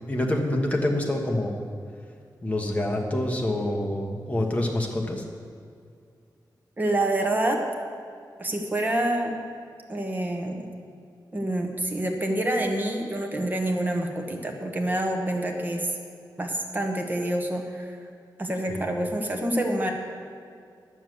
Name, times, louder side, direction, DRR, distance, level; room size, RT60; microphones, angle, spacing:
voice 1, 0.1-1.5 2.4-5.2 18.7-18.9, left 1 dB, 20° left, 1 dB, 1.3 m, -26 dB
voice 2, 6.8-7.6 8.4-9.4 9.9-10.7 11.3-15.9 16.4-18.0 18.4-19.9, right 1 dB, 25° right, 2 dB, 1.3 m, -27 dB
10.0 x 7.2 x 7.8 m, 2.3 s
wide cardioid pair, 150°, 8 cm